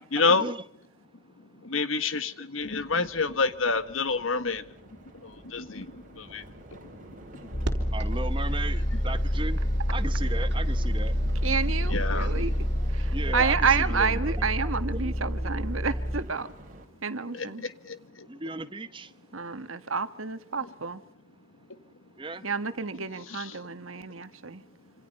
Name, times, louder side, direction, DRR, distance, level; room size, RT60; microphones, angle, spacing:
voice 1, 0.1-0.5 1.6-4.7 5.1-7.9 11.9-12.4 17.3-18.3 23.3-23.6, left 4 dB, 80° left, 1.6 m, -29 dB
sound 1, 2.6-16.9, right 1 dB, 40° right, 3.7 m, -48 dB
sound 2, 7.5-16.2, equal, 45° left, 2.5 m, -27 dB
sound 3, 7.6-13.3, right 1 dB, 60° right, 3.4 m, -43 dB
voice 2, 7.9-9.6 9.9-11.1 13.1-14.5 15.0-15.1 15.4-15.5 18.3-19.1 22.2-22.4, right 2 dB, 25° right, 1.2 m, -36 dB
voice 3, 11.4-12.5 12.9-16.5 17.0-17.6 19.3-21.0 22.4-24.6, right 5 dB, 90° right, 1.6 m, -29 dB
27.0 x 27.0 x 5.6 m
head